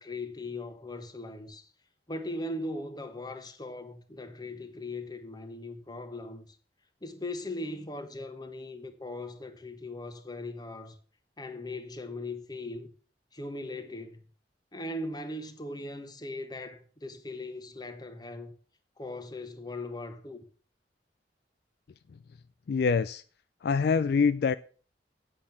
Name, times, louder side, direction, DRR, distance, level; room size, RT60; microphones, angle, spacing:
voice 1, 0.0-1.7 2.1-6.6 7.0-11.0 11.4-12.9 13.3-14.2 14.7-18.5 19.0-20.4, left 2 dB, 25° left, 1.2 m, -39 dB
voice 2, 22.7-23.2 23.6-24.5, left 5 dB, 60° left, 0.4 m, -25 dB
8.8 x 7.5 x 6.1 m
head